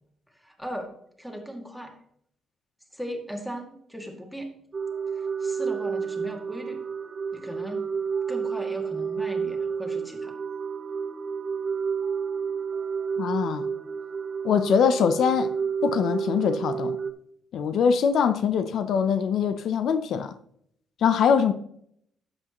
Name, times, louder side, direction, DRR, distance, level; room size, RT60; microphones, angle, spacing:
voice 1, 0.4-0.9 1.2-1.9 2.9-4.5 5.1-6.8 7.3-7.9 8.3-10.3, equal, ahead, 2.2 m, -37 dB
sound 1, 4.7-17.1, right 6 dB, 40° right, 0.8 m, -30 dB
voice 2, 13.2-13.7 14.4-15.5 15.8-17.0 17.5-20.3 21.0-21.5, left 7 dB, 70° left, 0.6 m, -23 dB
11.5 x 7.9 x 3.0 m
cardioid pair, 90°, 0 cm